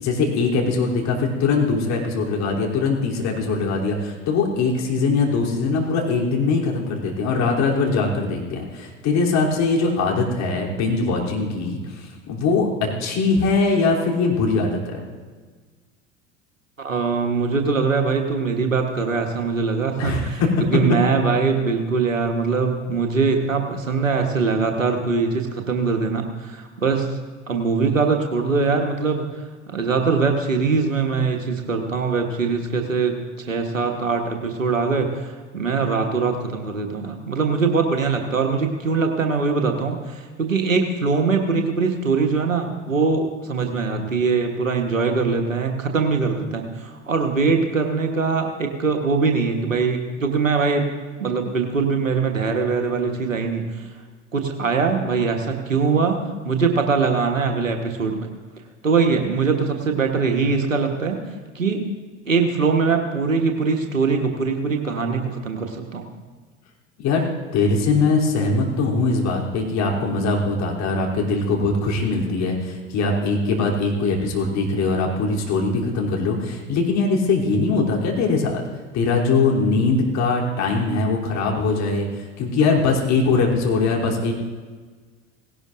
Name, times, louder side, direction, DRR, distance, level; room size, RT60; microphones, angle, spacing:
voice 1, 0.0-15.0 20.0-20.5 67.0-78.6 78.9-84.3, left 3 dB, 45° left, -1 dB, 3.3 m, -21 dB
voice 2, 16.8-27.1 27.5-29.2 29.7-33.1 33.5-50.8 51.2-53.9 54.3-58.2 58.8-61.2 61.5-61.9 62.2-66.0, right 4 dB, 90° right, 4 dB, 1.3 m, -22 dB
18.0 x 17.5 x 2.6 m, 1.4 s
figure-of-eight pair, 70°, 38 cm